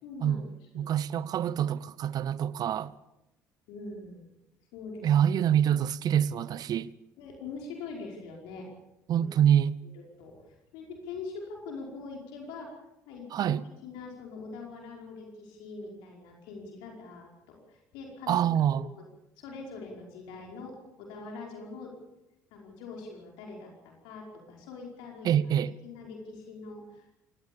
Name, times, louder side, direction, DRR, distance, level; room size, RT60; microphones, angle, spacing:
voice 1, 0.0-0.5 0.7-1.0 3.7-4.3 4.7-5.1 7.2-8.7 9.2-9.3 9.9-10.4 10.7-12.7 13.1-13.6 13.8-19.1 19.4-21.9 22.5-25.3 25.8-27.2, left 4 dB, 75° left, 5.2 m, -43 dB
voice 2, 0.7-2.9 5.0-6.9 9.1-9.8 13.3-13.6 18.3-18.9 25.2-25.7, right 9 dB, 55° right, 0.9 m, -26 dB
23.5 x 19.0 x 7.1 m
hypercardioid pair, 60°, 8 cm